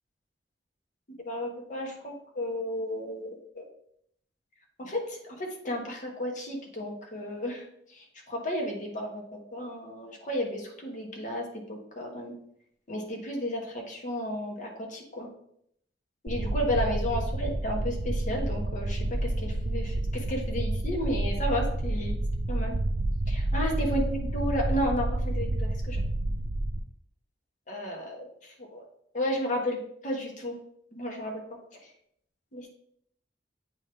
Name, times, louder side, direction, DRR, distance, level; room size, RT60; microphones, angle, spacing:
voice 1, 1.2-3.7 4.8-7.6 7.9-12.3 12.9-15.3 16.2-22.2 22.5-22.7 23.3-26.0 27.7-28.8 29.1-30.6 30.9-31.4 32.5-32.7, equal, 45° left, 1 dB, 1.3 m, -33 dB
sound 1, 16.3-26.8, right 1 dB, 75° right, 0.6 m, -29 dB
8.3 x 3.6 x 3.4 m, 0.70 s
head